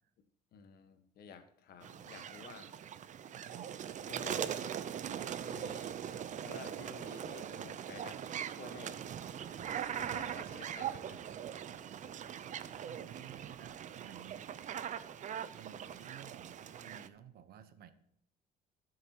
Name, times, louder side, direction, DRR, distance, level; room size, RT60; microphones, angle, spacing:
voice 1, 0.5-2.9 4.1-4.8 5.3-6.0 6.4-8.2 8.5-9.0 9.8-11.2, left 5 dB, 65° left, 8 dB, 1.4 m, -52 dB
sound 1, 1.8-17.1, right 9 dB, 45° right, 0.6 m, -41 dB
voice 2, 3.3-3.7 12.8-14.5 15.5-17.9, right 10 dB, 65° right, 11 dB, 1.0 m, -54 dB
17.0 x 6.6 x 3.0 m, 0.74 s
cardioid pair, 110°, 17 cm